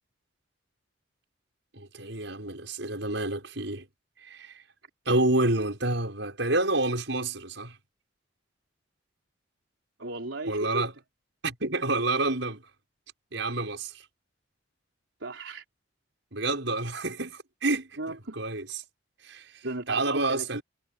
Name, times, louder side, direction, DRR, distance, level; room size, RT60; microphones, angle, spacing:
voice 1, 1.7-3.8 4.2-4.6 5.0-7.8 10.5-10.9 11.4-12.6 13.3-14.0 16.3-17.9 18.4-18.7 19.2-19.5 19.9-20.6, right 2 dB, 75° right, 6.6 m, -28 dB
voice 2, 10.0-10.9 15.2-15.6 18.0-18.4 19.6-20.6, right 2 dB, 90° right, 4.2 m, -35 dB
head